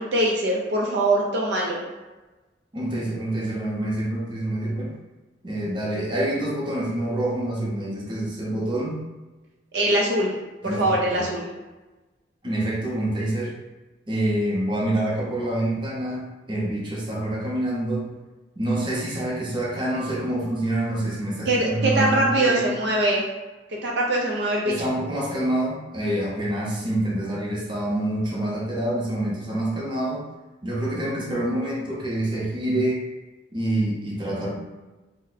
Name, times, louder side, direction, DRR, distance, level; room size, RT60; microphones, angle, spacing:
voice 1, 0.0-1.8 9.7-10.3 10.6-11.5 21.5-23.2 23.8-24.7, right 1 dB, 65° right, -2 dB, 0.5 m, -22 dB
voice 2, 2.7-4.9 5.4-9.0 10.6-11.3 12.4-13.5 14.1-18.1 18.6-22.7 24.6-30.2 30.6-33.0 33.5-34.6, right 1 dB, 25° right, -5 dB, 0.7 m, -26 dB
2.6 x 2.1 x 3.9 m, 1.1 s
head